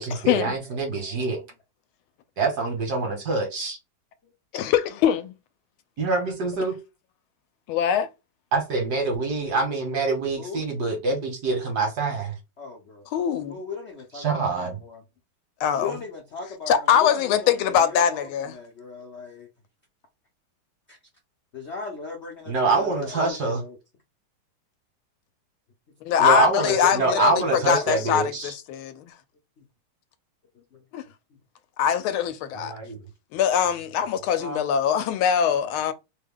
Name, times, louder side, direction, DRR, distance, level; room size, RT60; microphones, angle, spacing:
voice 1, 0.0-1.4 2.4-3.8 6.0-6.8 8.5-12.4 14.1-14.8 22.5-23.6 26.2-28.5 32.5-33.0, right 3 dB, 55° right, 1.4 m, -25 dB
voice 2, 0.7-1.4 4.2-4.3 10.4-10.6 12.6-13.1 13.5-15.0 15.8-19.5 20.9-21.0 21.5-23.8 26.2-28.3 30.7-30.8 32.7-33.0 34.4-34.6, left 3 dB, 60° left, 0.7 m, -37 dB
voice 3, 4.5-5.3 7.7-8.1 13.1-13.6 15.6-16.0 16.7-18.6 26.1-28.3 28.7-29.1 30.9-31.0 31.8-32.7 33.3-35.9, left 8 dB, 85° left, 1.4 m, -22 dB
3.3 x 2.2 x 3.5 m
omnidirectional pair, 2.3 m